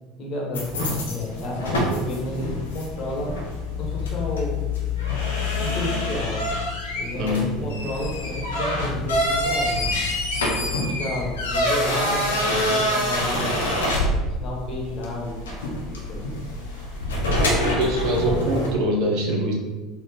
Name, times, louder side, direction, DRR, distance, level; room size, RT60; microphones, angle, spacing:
voice 1, 0.2-3.3 3.8-4.6 5.6-6.5 7.0-9.9 10.5-13.7 14.4-15.4 15.8-16.3, left 1 dB, 40° left, -3 dB, 1.2 m, -31 dB
sound 1, 0.5-18.7, left 1 dB, 70° left, 0.6 m, -26 dB
voice 2, 7.1-7.5 17.6-19.5, equal, 50° right, -1 dB, 0.8 m, -24 dB
4.1 x 2.4 x 3.6 m, 1.2 s
figure-of-eight pair, 70°, 0 cm